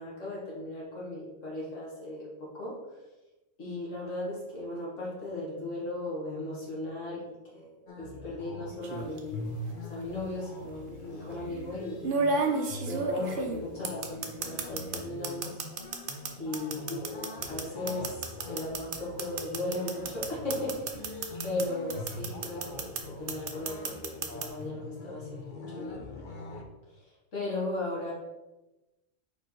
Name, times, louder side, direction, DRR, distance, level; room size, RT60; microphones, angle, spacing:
voice 1, 0.0-2.8 3.6-9.4 9.8-12.1 12.8-15.6 16.4-17.1 17.5-20.8 21.4-26.0 26.9-28.1, left 2 dB, 70° left, -6 dB, 2.3 m, -37 dB
sound 1, 7.9-26.6, left 2 dB, 45° left, 0.8 m, -43 dB
sound 2, 8.8-9.2 10.4-10.5 12.0-15.0 15.2-21.6 21.9-23.0 23.3-24.5, right 4 dB, 50° right, 0.8 m, -31 dB
4.9 x 4.9 x 4.5 m, 1.1 s
omnidirectional pair, 1.3 m